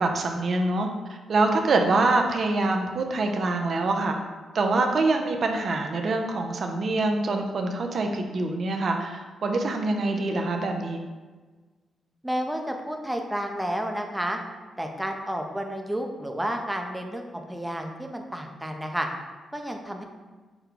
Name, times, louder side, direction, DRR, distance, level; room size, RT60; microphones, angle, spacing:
voice 1, 0.0-4.2 4.5-11.0, right 2 dB, 60° right, 4 dB, 0.6 m, -25 dB
voice 2, 12.2-14.4 14.8-19.1 19.5-20.0, equal, 10° right, 3 dB, 0.7 m, -31 dB
5.8 x 2.2 x 3.8 m, 1.3 s
supercardioid pair, 50°, 0 cm